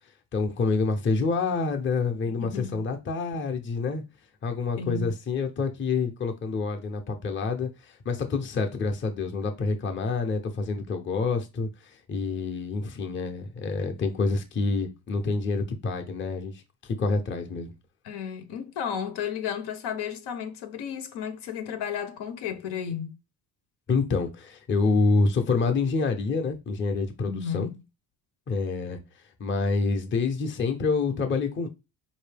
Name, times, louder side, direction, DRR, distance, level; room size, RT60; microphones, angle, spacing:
voice 1, 0.3-4.0 4.4-11.7 12.1-16.5 16.8-17.7 23.9-27.7 28.5-29.0 29.4-31.7, left 4 dB, 30° left, 0.6 m, -27 dB
voice 2, 2.4-2.8 4.8-5.1 18.0-23.2 27.2-27.7, left 7 dB, 80° left, 0.8 m, -33 dB
4.6 x 2.7 x 3.3 m
cardioid pair, 145°, 40 cm